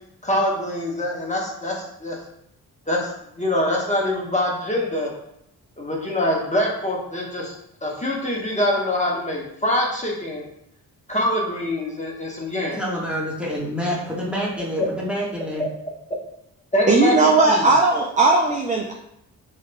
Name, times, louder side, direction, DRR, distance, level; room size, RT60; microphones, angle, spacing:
voice 1, 0.2-2.2 2.9-5.1 5.8-7.5 7.8-10.5 11.1-12.8 15.6-15.7 16.7-17.7, left 1 dB, 15° left, -3 dB, 1.1 m, -24 dB
voice 2, 12.8-15.6, equal, 5° right, -5 dB, 1.4 m, -27 dB
voice 3, 16.9-18.9, right 3 dB, 20° right, 0 dB, 0.4 m, -17 dB
3.5 x 3.2 x 2.2 m, 0.76 s
supercardioid pair, 40°, 43 cm